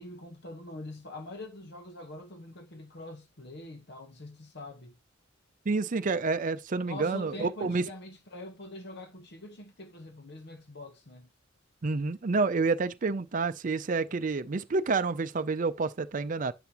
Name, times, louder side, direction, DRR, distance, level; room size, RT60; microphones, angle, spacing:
voice 1, 0.0-4.9 6.8-11.3, left 1 dB, 60° left, 1.3 m, -44 dB
voice 2, 5.7-7.8 11.8-16.5, right 4 dB, 45° right, 0.5 m, -29 dB
10.5 x 5.8 x 3.0 m
head